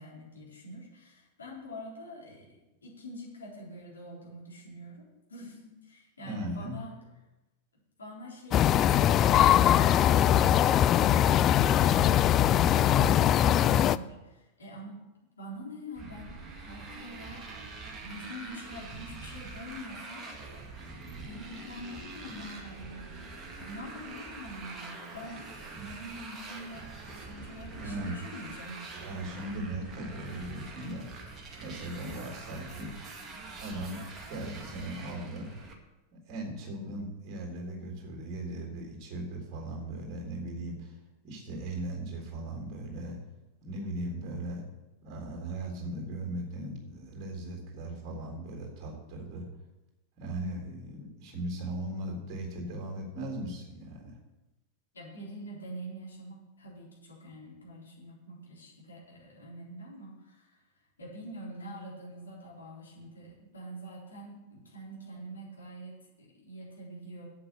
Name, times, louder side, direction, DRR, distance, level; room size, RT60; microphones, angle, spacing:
voice 1, 0.0-2.6 2.8-6.9 8.0-10.0 10.4-15.0 15.4-16.3 16.6-20.3 21.1-23.2 23.6-25.5 25.7-28.8 54.9-67.3, equal, 70° left, -4 dB, 4.0 m, -45 dB
voice 2, 6.2-6.8 27.8-28.2 28.9-31.1 31.6-32.9 33.6-34.0 34.3-35.5 36.1-41.0 41.2-43.2 43.6-44.6 45.0-49.5 50.2-54.2, right 1 dB, 40° right, 0 dB, 3.7 m, -38 dB
sound 1, 8.5-14.0, left 11 dB, 30° left, 0.3 m, -22 dB
Motorcycle, 16.0-35.7, right 3 dB, 20° right, 2.0 m, -44 dB
8.2 x 7.7 x 8.1 m, 1.0 s
figure-of-eight pair, 90°, 0 cm